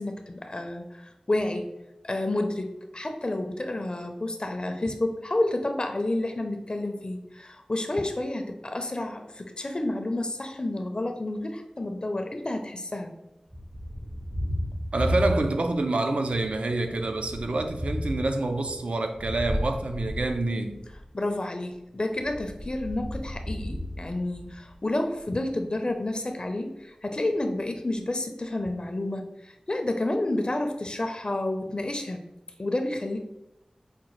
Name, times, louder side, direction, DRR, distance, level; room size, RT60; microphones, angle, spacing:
voice 1, 0.0-1.7 2.0-13.1 21.1-32.2 32.6-33.2, left 1 dB, 45° left, 0.4 m, -30 dB
Thunder, 13.5-15.9 16.3-21.1 22.1-24.8, equal, 10° right, 0.4 m, -34 dB
voice 2, 14.9-20.8, right 2 dB, 75° right, 0.4 m, -27 dB
4.9 x 2.1 x 3.0 m
wide cardioid pair, 40°, 2 cm